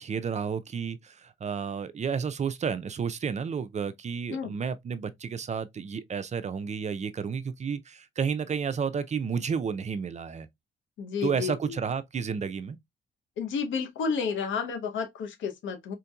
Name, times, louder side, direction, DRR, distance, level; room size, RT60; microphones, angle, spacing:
voice 1, 0.0-10.5 11.2-12.8, right 6 dB, 35° right, 0.4 m, -31 dB
voice 2, 11.0-11.8 13.4-15.9, left 6 dB, 75° left, 0.8 m, -31 dB
4.3 x 2.7 x 2.3 m
cardioid pair, 90°, 20 cm